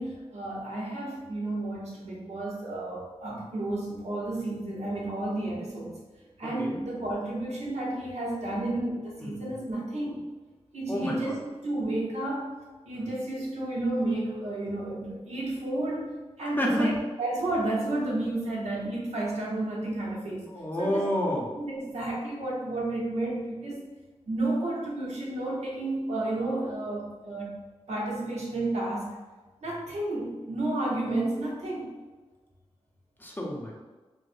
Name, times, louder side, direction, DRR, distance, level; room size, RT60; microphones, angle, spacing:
voice 1, 0.0-6.0 6.4-10.2 10.7-11.4 11.6-12.5 12.9-20.5 20.8-21.1 21.6-23.8 24.3-27.6 27.9-29.2 29.6-31.9, right 2 dB, 90° right, -4 dB, 0.8 m, -31 dB
voice 2, 10.9-11.4 16.6-16.9 20.5-21.6 33.2-33.7, equal, 15° left, -3 dB, 0.6 m, -29 dB
4.7 x 2.0 x 2.6 m, 1.3 s
wide cardioid pair, 115°, 11 cm